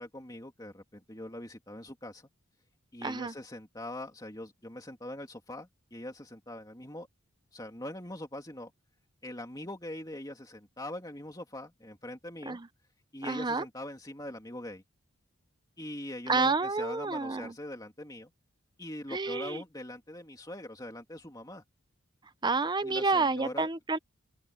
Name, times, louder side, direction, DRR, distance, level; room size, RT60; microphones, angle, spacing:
voice 1, 0.0-2.3 2.9-7.1 7.5-8.7 9.2-12.6 13.1-14.8 15.8-18.3 18.8-21.6 22.8-23.7, left 1 dB, 15° left, 2.8 m, -42 dB
voice 2, 3.0-3.3 12.5-12.7 13.2-13.6 16.3-17.5 19.1-19.6 22.4-24.0, right 3 dB, 20° right, 0.7 m, -29 dB
open air
head